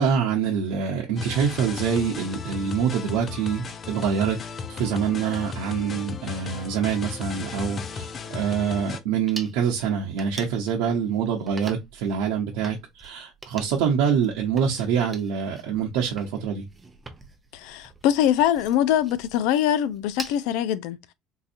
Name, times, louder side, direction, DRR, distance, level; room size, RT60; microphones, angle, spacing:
voice 1, 0.0-4.4 4.7-16.6, right 7 dB, 85° right, 0.8 m, -25 dB
sound 1, 1.2-9.0, left 5 dB, 35° left, 0.6 m, -35 dB
sound 2, 9.3-20.4, right 3 dB, 20° right, 0.7 m, -44 dB
voice 2, 17.5-21.1, left 10 dB, 80° left, 0.5 m, -23 dB
3.9 x 2.8 x 2.5 m
cardioid pair, 125°, 0 cm